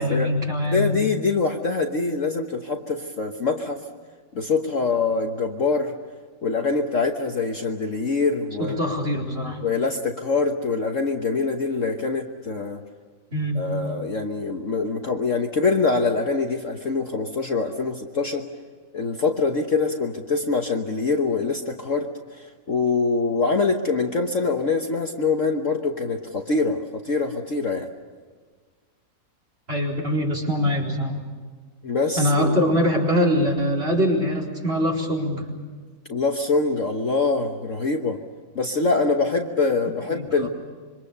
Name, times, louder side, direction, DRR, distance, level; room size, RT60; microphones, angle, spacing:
voice 1, 0.0-1.0 8.6-9.6 13.3-13.6 29.7-31.2 32.2-35.5 40.1-40.5, equal, 30° right, 0 dB, 4.5 m, -23 dB
voice 2, 0.7-3.8 4.3-5.9 6.4-8.9 9.6-12.8 13.5-18.4 18.9-27.9 31.8-32.5 36.1-38.2 38.5-40.5, left 4 dB, 45° left, 3 dB, 1.4 m, -24 dB
26.5 x 25.0 x 6.8 m, 1.5 s
omnidirectional pair, 2.0 m